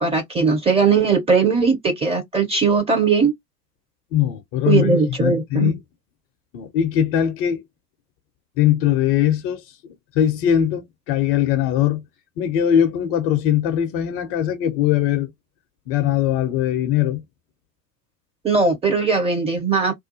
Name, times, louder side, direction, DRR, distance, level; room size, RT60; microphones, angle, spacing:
voice 1, 0.0-3.3 4.7-5.7 18.4-20.0, right 5 dB, 10° right, 0.5 m, -19 dB
voice 2, 4.1-4.9 5.2-5.8 6.5-7.6 8.6-12.0 12.4-15.3 15.9-17.2, left 10 dB, 35° left, 0.5 m, -20 dB
2.4 x 2.3 x 2.6 m
figure-of-eight pair, 90°, 50 cm